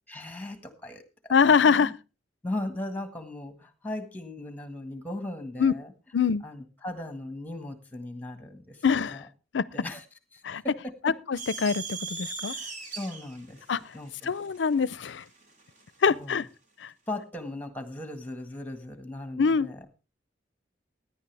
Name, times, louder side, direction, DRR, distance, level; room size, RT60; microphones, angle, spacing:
voice 1, 0.1-1.9 2.4-5.9 6.4-8.8 9.0-9.2 9.7-10.0 10.3-11.1 12.4-14.3 16.1-16.4 17.1-19.9, left 1 dB, 10° left, 1.6 m, -38 dB
voice 2, 1.3-1.9 5.6-5.7 6.1-6.4 8.8-9.2 9.5-9.6 10.4-10.6 11.0-12.5 13.7-13.8 14.3-15.2 16.0-16.4 19.4-19.7, left 6 dB, 70° left, 0.5 m, -23 dB
sound 1, 11.4-15.9, right 4 dB, 45° right, 2.5 m, -39 dB
17.0 x 10.0 x 3.4 m
head